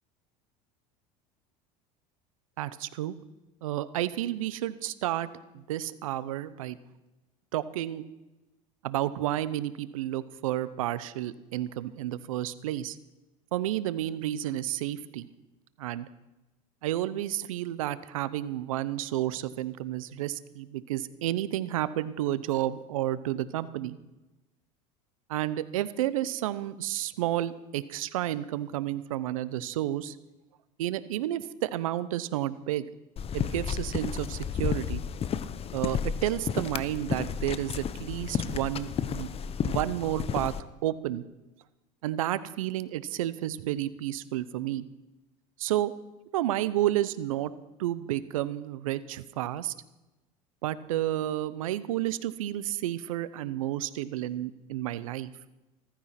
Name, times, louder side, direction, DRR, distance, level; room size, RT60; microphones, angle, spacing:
voice 1, 2.6-3.2 3.6-5.3 5.5-6.8 7.5-8.0 8.8-13.0 13.5-15.3 15.8-16.1 16.8-24.0 25.3-30.1 30.8-32.9 33.3-35.0 35.7-39.3 39.6-40.5 40.8-41.2 42.0-44.9 45.6-45.9 46.3-47.5 47.8-49.7 50.6-55.3, right 13 dB, 90° right, 16 dB, 0.8 m, -31 dB
sound 1, 33.2-40.6, left 7 dB, 35° left, 1.0 m, -32 dB
15.0 x 14.0 x 5.9 m, 1.0 s
supercardioid pair, 95°, 17 cm